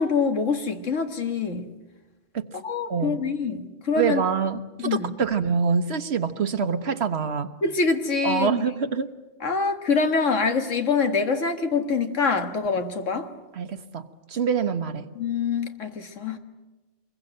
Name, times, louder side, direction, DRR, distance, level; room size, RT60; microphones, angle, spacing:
voice 1, 0.0-1.7 2.6-4.2 4.8-5.1 7.6-8.5 9.4-13.3 15.2-16.4, left 4 dB, 70° left, 6 dB, 2.0 m, -25 dB
voice 2, 4.0-7.5 8.2-9.1 13.5-15.0, right 6 dB, 55° right, 9 dB, 1.3 m, -25 dB
25.5 x 22.0 x 7.9 m, 1.1 s
omnidirectional pair, 1.3 m